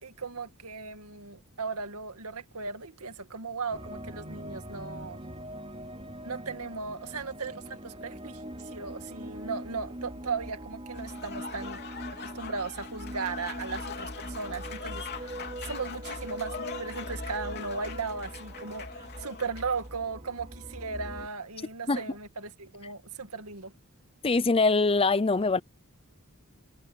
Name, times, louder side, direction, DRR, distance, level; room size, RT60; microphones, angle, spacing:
voice 1, 0.0-5.2 6.2-11.8 12.2-15.4 15.6-23.7, right 4 dB, 85° right, 2.1 m, -37 dB
sound 1, 3.7-21.3, right 1 dB, 25° right, 3.3 m, -42 dB
Applause / Crowd, 10.9-19.8, left 6 dB, 50° left, 3.6 m, -42 dB
voice 2, 24.2-25.6, left 3 dB, 25° left, 0.5 m, -23 dB
head